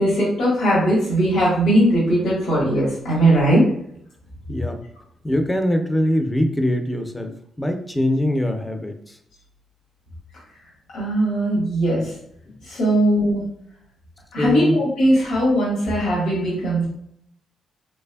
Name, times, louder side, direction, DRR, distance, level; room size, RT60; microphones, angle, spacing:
voice 1, 0.0-3.6 10.9-12.1 12.6-13.4 14.3-16.8, right 1 dB, 85° left, -7 dB, 1.5 m, -19 dB
voice 2, 4.5-4.8 5.2-9.2 12.4-12.6 14.4-14.8, left 1 dB, 10° left, 5 dB, 0.5 m, -23 dB
3.4 x 3.2 x 2.2 m, 0.71 s
cardioid pair, 100°, 0 cm